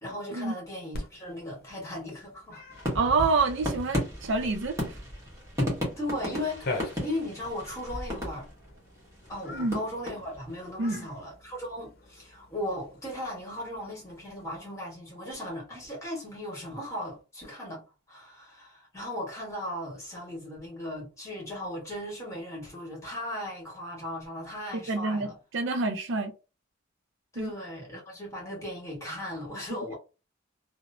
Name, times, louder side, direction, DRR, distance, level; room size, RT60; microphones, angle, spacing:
voice 1, 0.0-2.6 6.0-8.5 9.3-17.8 18.1-25.4 27.3-29.9, left 1 dB, 15° left, 1.4 m, -37 dB
Cat, 0.9-14.6, left 2 dB, 50° left, 0.7 m, -45 dB
sound 1, 2.7-8.8 9.2-10.5, left 1 dB, 15° right, 1.1 m, -34 dB
voice 2, 2.9-5.0 9.5-9.8 10.8-11.1 24.9-26.3 27.4-27.5, right 3 dB, 65° right, 0.5 m, -27 dB
2.9 x 2.0 x 2.5 m
head